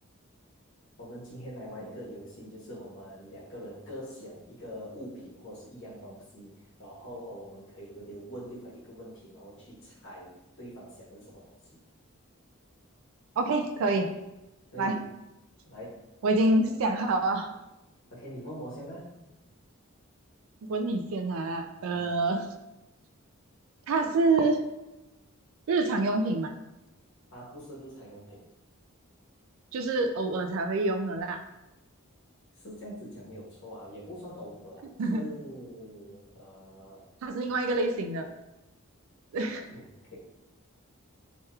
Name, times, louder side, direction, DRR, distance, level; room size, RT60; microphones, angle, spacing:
voice 1, 1.0-6.5 6.8-11.6 14.7-15.1 15.6-16.0 16.5-16.7 18.1-19.1 21.7-22.1 27.3-28.5 32.6-37.1 39.7-39.8, equal, 55° left, -6 dB, 1.1 m, -44 dB
voice 2, 13.4-14.1 14.8-15.0 16.2-17.5 20.7-22.5 23.9-24.6 25.7-26.5 29.7-31.4 35.0-35.2 37.2-38.3 39.3-39.7, right 2 dB, 70° right, 7 dB, 0.3 m, -27 dB
3.2 x 2.9 x 2.3 m, 0.97 s
head